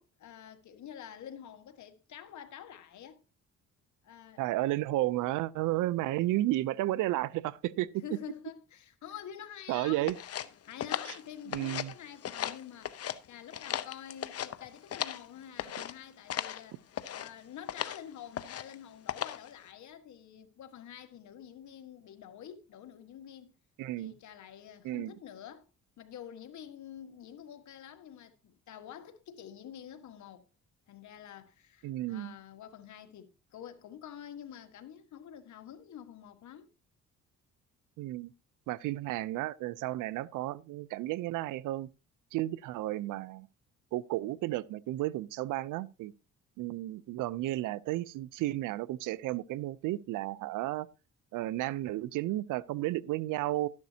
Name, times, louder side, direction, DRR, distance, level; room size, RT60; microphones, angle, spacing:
voice 1, 0.0-3.2 4.0-4.7 8.0-10.1 10.6-16.9 17.1-23.5 24.0-25.7 26.0-30.5 30.9-36.7, left 9 dB, 70° left, 1.6 m, -48 dB
voice 2, 4.4-8.0 9.7-10.2 11.5-11.9 23.8-24.1 24.8-25.1 31.8-32.3 38.0-38.3 38.7-41.9 42.3-43.5 43.9-46.1 46.6-50.9 51.3-53.7, right 16 dB, 90° right, 0.5 m, -33 dB
sound 1, 10.1-11.9 12.2-13.2 13.5-15.2 15.6-15.9 16.3-16.6 16.9-17.3 17.7-18.0 18.3-18.7 19.1-19.5, left 10 dB, 55° left, 0.8 m, -37 dB
13.0 x 10.5 x 2.8 m
cardioid pair, 90°, 30 cm